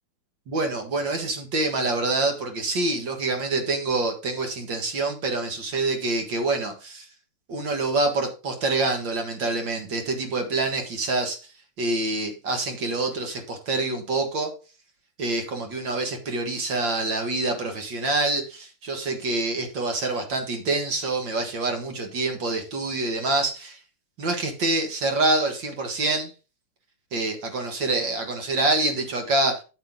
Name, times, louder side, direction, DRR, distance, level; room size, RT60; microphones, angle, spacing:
voice 1, 0.5-7.1 7.5-11.5 11.8-14.5 15.2-23.8 24.2-26.3 27.1-29.6, right 2 dB, 60° right, 5 dB, 2.4 m, -26 dB
8.4 x 8.0 x 3.7 m, 0.32 s
omnidirectional pair, 2.4 m